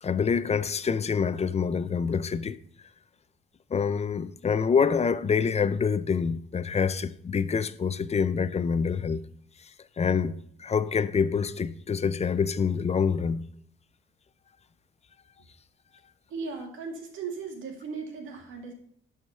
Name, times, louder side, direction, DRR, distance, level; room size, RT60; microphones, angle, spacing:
voice 1, 0.0-2.6 3.7-9.3 9.6-9.7 10.0-13.5, left 6 dB, 35° left, 0.6 m, -26 dB
voice 2, 16.3-18.7, right 5 dB, 80° right, 2.3 m, -37 dB
11.5 x 4.9 x 5.6 m
cardioid pair, 90°, 20 cm